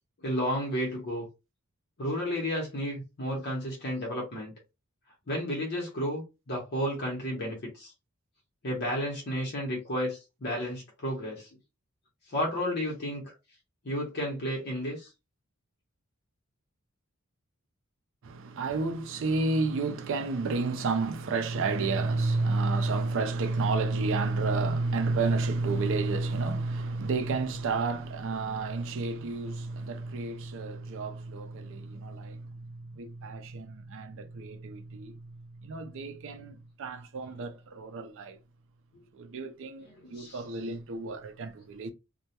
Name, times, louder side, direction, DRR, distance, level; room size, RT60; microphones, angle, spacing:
voice 1, 0.2-1.3 2.0-4.5 5.3-7.9 8.6-11.5 12.3-13.3 13.8-15.1 37.2-37.5 39.8-40.4, equal, 50° left, 0.8 m, -32 dB
voice 2, 18.2-38.4 39.2-41.9, right 3 dB, 65° right, 0.4 m, -31 dB
2.2 x 2.1 x 2.8 m
head